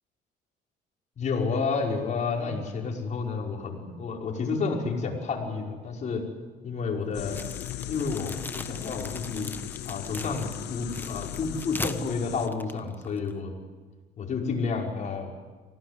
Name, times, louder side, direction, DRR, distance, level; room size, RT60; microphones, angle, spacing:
voice 1, 1.2-6.2 6.6-7.4 7.9-9.5 9.8-13.6 14.2-15.3, left 4 dB, 45° left, 0 dB, 5.6 m, -30 dB
sound 1, 7.1-12.5, left 14 dB, 90° left, 0.9 m, -38 dB
sound 2, 7.3-13.4, left 2 dB, 10° left, 1.3 m, -40 dB
25.0 x 18.0 x 10.0 m, 1.3 s
cardioid pair, 110°, 17 cm